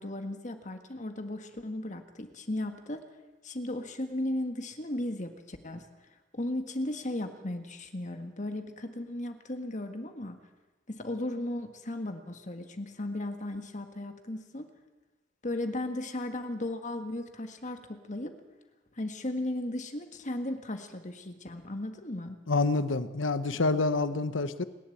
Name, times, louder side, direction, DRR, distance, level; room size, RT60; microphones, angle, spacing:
voice 1, 0.0-3.0 3.4-5.8 6.3-10.4 10.9-14.7 15.4-18.4 19.0-22.4, left 1 dB, 40° left, 7 dB, 1.7 m, -36 dB
voice 2, 22.5-24.6, left 3 dB, 90° left, 13 dB, 1.0 m, -27 dB
27.0 x 11.5 x 8.6 m, 1.2 s
head